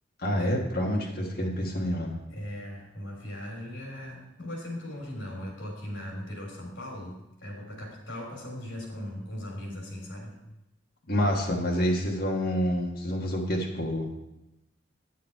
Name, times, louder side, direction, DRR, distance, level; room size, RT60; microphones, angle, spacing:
voice 1, 0.2-2.2 11.1-14.1, equal, 50° left, -1 dB, 1.5 m, -28 dB
voice 2, 2.3-10.3, left 1 dB, 70° left, -1 dB, 3.3 m, -39 dB
9.3 x 7.1 x 4.6 m, 0.92 s
head